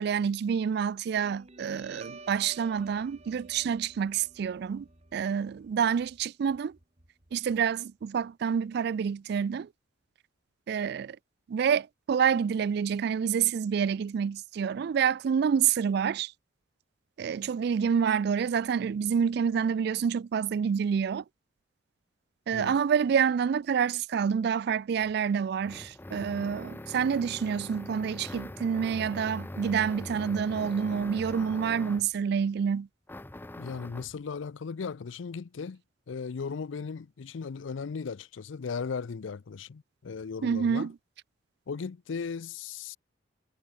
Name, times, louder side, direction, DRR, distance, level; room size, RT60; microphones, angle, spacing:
voice 1, 0.0-6.8 7.3-9.7 10.7-11.2 11.5-16.3 17.2-21.2 22.5-32.9 40.4-40.9, right 7 dB, 60° right, 0.3 m, -28 dB
Guitar, 1.2-8.2, right 3 dB, 35° right, 2.3 m, -52 dB
sound 1, 25.0-32.2 33.1-34.2, left 1 dB, 10° left, 0.5 m, -42 dB
voice 2, 33.6-35.8 36.1-40.9 41.7-43.0, left 5 dB, 80° left, 0.5 m, -37 dB
head